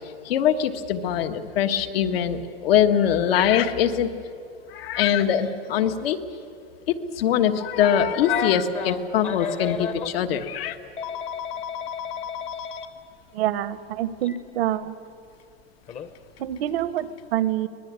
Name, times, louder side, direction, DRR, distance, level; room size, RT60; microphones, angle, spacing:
voice 1, 0.2-4.1 4.7-6.2 6.9-10.8, left 9 dB, 70° left, 7 dB, 1.6 m, -22 dB
Telephone, 8.2-10.1 11.0-12.9 14.2-14.4 15.9-16.1, left 7 dB, 20° left, 0.9 m, -32 dB
voice 2, 13.3-14.9 16.4-17.7, right 12 dB, 75° right, 14 dB, 1.2 m, -26 dB
24.0 x 19.5 x 9.7 m, 2.4 s
supercardioid pair, 165°, 30 cm